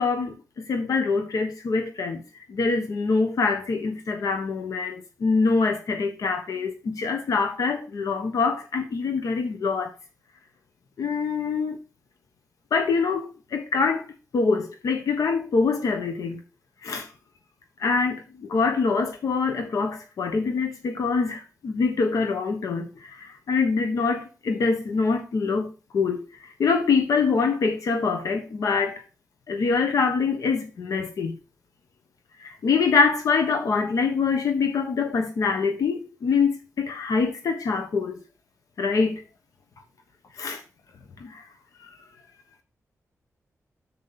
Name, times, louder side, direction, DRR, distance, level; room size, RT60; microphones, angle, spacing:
voice 1, 0.0-2.2 2.5-9.9 11.0-11.8 12.7-16.4 16.8-17.1 17.8-29.0 29.5-31.4 32.4-38.2 38.8-39.2 40.3-40.6 41.2-41.4 41.8-41.9, left 4 dB, 90° left, 1.2 m, -25 dB
7.4 x 7.0 x 4.1 m
wide cardioid pair, 125°, 6 cm